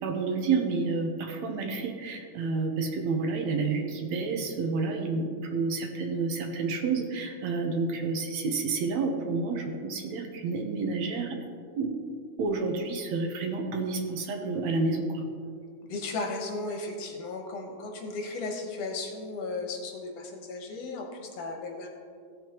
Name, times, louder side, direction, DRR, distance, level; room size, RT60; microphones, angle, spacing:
voice 1, 0.0-11.4 11.8-11.9 12.4-15.2, right 4 dB, 70° right, 3 dB, 2.0 m, -29 dB
voice 2, 15.9-21.9, left 3 dB, 60° left, 1 dB, 2.1 m, -35 dB
16.0 x 7.7 x 3.0 m, 2.2 s
omnidirectional pair, 3.5 m